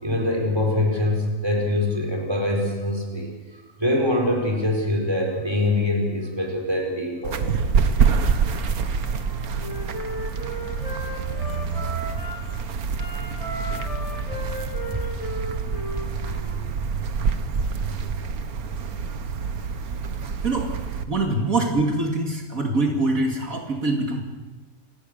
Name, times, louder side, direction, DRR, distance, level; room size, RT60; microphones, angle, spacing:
voice 1, 0.0-7.5 10.2-10.3 12.2-12.3 13.1-13.2 14.3-14.4 14.9-15.0, left 1 dB, 15° right, 1 dB, 5.0 m, -24 dB
sound 1, 7.2-21.0, right 5 dB, 85° right, 1.7 m, -26 dB
Wind instrument woodwind instrument, 9.1-12.5 12.9-16.6, equal, 25° left, 3.4 m, -35 dB
voice 2, 21.1-24.2, right 2 dB, 70° right, 2 dB, 2.9 m, -24 dB
28.0 x 19.0 x 6.8 m, 1.2 s
omnidirectional pair, 1.5 m